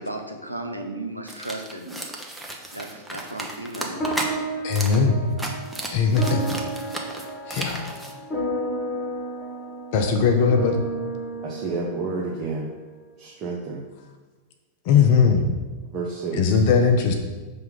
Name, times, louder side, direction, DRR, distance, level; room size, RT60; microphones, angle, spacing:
voice 1, 0.0-2.0 2.7-4.1, right 1 dB, 90° right, 2 dB, 0.7 m, -35 dB
sound 1, 1.3-4.3 4.7-5.0 5.3-8.1, right 1 dB, 5° right, 0.9 m, -34 dB
sound 2, 4.0-12.7, right 1 dB, 20° left, 1.4 m, -32 dB
voice 2, 4.6-5.2 5.9-6.6 7.5-7.9 9.9-10.8 14.8-15.5 16.4-17.1, left 5 dB, 50° left, 4 dB, 0.7 m, -19 dB
voice 3, 11.4-12.7 13.2-13.8 15.9-16.6, right 3 dB, 35° right, -3 dB, 0.9 m, -30 dB
5.7 x 3.4 x 5.8 m, 1.3 s
figure-of-eight pair, 90°, 0 cm